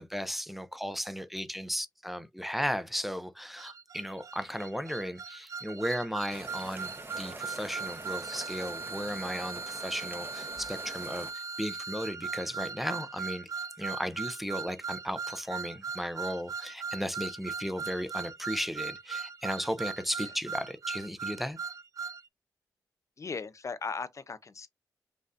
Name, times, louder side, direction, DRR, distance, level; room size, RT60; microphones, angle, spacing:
voice 1, 0.0-13.5 13.8-21.6, equal, ahead, 0.5 m, -35 dB
sound 1, 3.6-22.2, right 5 dB, 50° right, 0.4 m, -39 dB
sound 2, 6.3-11.3, right 2 dB, 30° right, 0.9 m, -45 dB
voice 2, 23.2-24.7, left 4 dB, 45° left, 0.5 m, -38 dB
5.4 x 2.6 x 2.5 m
cardioid pair, 65°, 7 cm